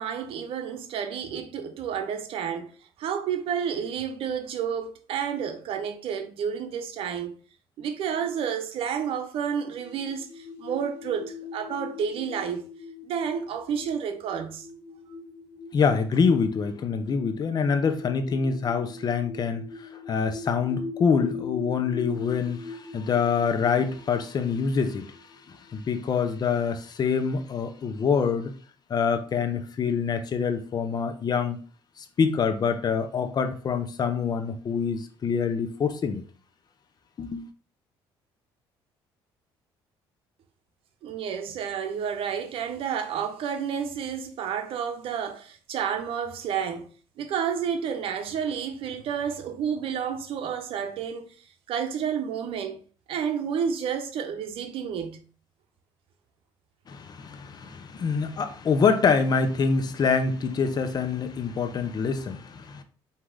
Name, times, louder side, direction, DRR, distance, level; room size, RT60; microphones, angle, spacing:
voice 1, 0.0-2.7 3.0-7.3 7.8-12.6 13.0-14.7 41.0-46.9 47.2-51.3 51.7-52.8 53.1-55.3, right 7 dB, 65° right, 0.7 m, -30 dB
sound 1, 9.8-26.1, left 4 dB, 85° left, 1.6 m, -41 dB
voice 2, 15.7-28.5 28.9-31.6 32.0-36.2 37.2-37.5 56.9-62.8, left 5 dB, 40° left, 0.7 m, -26 dB
4.5 x 2.9 x 3.8 m
cardioid pair, 90°, 10 cm